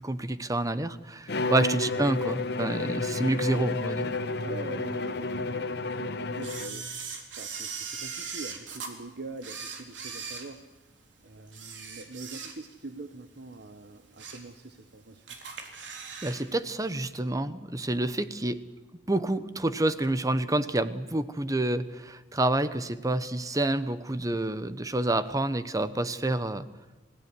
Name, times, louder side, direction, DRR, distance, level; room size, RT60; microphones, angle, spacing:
voice 1, 0.0-4.1 16.2-18.6 19.1-26.7, right 2 dB, 20° right, 13 dB, 0.9 m, -28 dB
Bowed string instrument, 1.3-6.9, left 3 dB, 65° left, 1.2 m, -31 dB
voice 2, 4.4-10.6 11.2-15.3, right 3 dB, 60° right, 7 dB, 1.2 m, -44 dB
Camera, 6.4-8.9 9.4-11.0 11.5-12.9 13.2-13.4 13.9-14.5 14.8-14.9 15.3-16.4 16.7-16.8, right 6 dB, 80° right, 3.6 m, -39 dB
24.5 x 16.5 x 9.7 m, 1.2 s
head